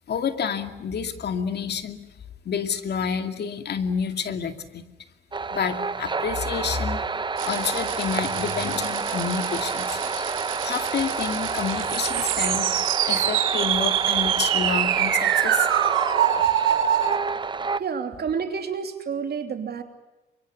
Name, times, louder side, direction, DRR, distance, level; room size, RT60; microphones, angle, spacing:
voice 1, 0.1-2.0 2.5-4.8 5.5-7.1 7.4-10.4 10.6-15.7, left 6 dB, 55° left, 8 dB, 2.4 m, -29 dB
sound 1, 5.3-17.8, right 4 dB, 25° right, 0.9 m, -29 dB
sound 2, 7.4-17.2, right 11 dB, 85° right, 2.5 m, -25 dB
voice 2, 17.8-19.8, right 6 dB, 55° right, 6 dB, 2.9 m, -29 dB
24.5 x 23.5 x 8.2 m, 1.1 s
cardioid pair, 90°, 20 cm